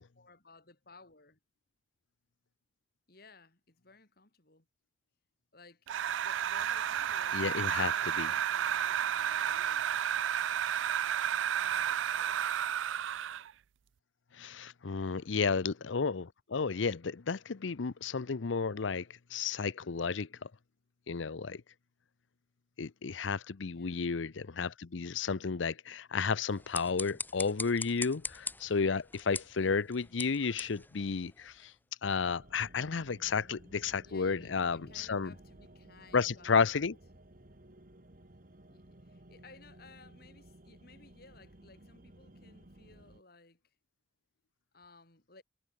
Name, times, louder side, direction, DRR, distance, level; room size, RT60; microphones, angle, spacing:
voice 1, 0.2-1.4 3.1-4.7 5.5-5.9 6.2-9.9 11.4-12.5 15.1-15.5 23.7-24.1 34.0-36.9 38.7-43.7 44.7-45.4, left 3 dB, 55° left, 3.5 m, -58 dB
sound 1, 5.9-13.5, right 9 dB, 90° right, 0.4 m, -32 dB
voice 2, 7.3-8.3 14.4-19.1 19.3-20.5 21.1-21.6 22.8-31.7 32.0-35.3 36.1-36.9, left 5 dB, 90° left, 0.7 m, -32 dB
sound 2, 26.5-31.8, left 3 dB, 10° left, 1.8 m, -43 dB
sound 3, 32.0-43.2, right 1 dB, 50° right, 2.0 m, -56 dB
head